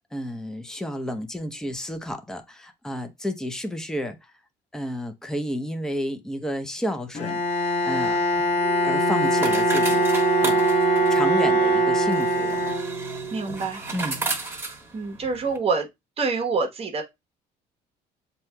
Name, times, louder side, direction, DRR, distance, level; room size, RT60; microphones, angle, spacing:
voice 1, 0.1-4.3 4.7-8.2 8.8-10.6 11.1-12.6 13.9-14.3, equal, 5° left, 0.6 m, -31 dB
Bowed string instrument, 7.1-13.3, left 2 dB, 40° left, 1.2 m, -24 dB
sound 1, 7.9-15.6, right 3 dB, 15° right, 1.6 m, -35 dB
Wind instrument woodwind instrument, 8.6-13.7, right 10 dB, 50° right, 0.6 m, -25 dB
voice 2, 13.3-13.8 14.9-15.9 16.2-17.0, right 4 dB, 35° right, 1.1 m, -26 dB
7.3 x 2.8 x 2.2 m
cardioid pair, 110°, 17 cm